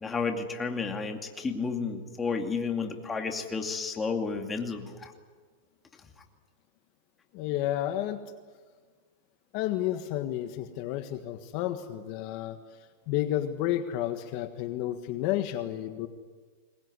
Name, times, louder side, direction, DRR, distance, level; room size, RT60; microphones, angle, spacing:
voice 1, 0.0-5.1, left 4 dB, 15° left, 4 dB, 2.4 m, -32 dB
voice 2, 7.3-8.2 9.5-12.6 13.1-16.1, left 12 dB, 45° left, 8 dB, 1.5 m, -31 dB
22.5 x 19.5 x 9.8 m, 1.5 s
supercardioid pair, 150°, 0 cm